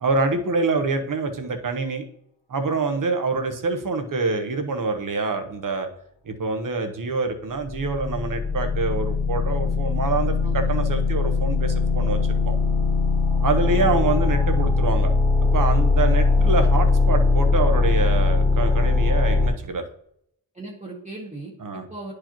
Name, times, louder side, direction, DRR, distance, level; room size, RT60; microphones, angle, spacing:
voice 1, 0.0-2.0 2.5-5.9 6.2-12.5 13.4-15.1 15.5-19.8 21.6-21.9, right 3 dB, 50° right, 6 dB, 0.9 m, -26 dB
sound 1, 7.6-19.5, left 3 dB, 15° left, 1.4 m, -21 dB
voice 2, 20.5-22.1, right 2 dB, 15° right, -3 dB, 1.0 m, -38 dB
10.0 x 4.8 x 2.9 m, 0.74 s
wide cardioid pair, 135°, 43 cm